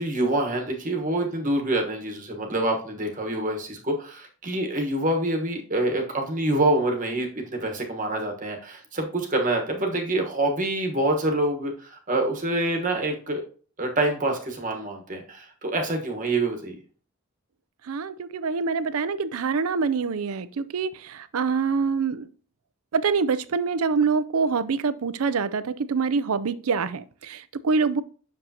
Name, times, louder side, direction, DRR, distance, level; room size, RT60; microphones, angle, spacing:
voice 1, 0.0-13.4 13.8-16.7, right 1 dB, 35° right, 1.2 m, -26 dB
voice 2, 17.9-22.3 22.9-28.0, right 5 dB, 80° right, 0.5 m, -25 dB
8.1 x 6.6 x 2.8 m
head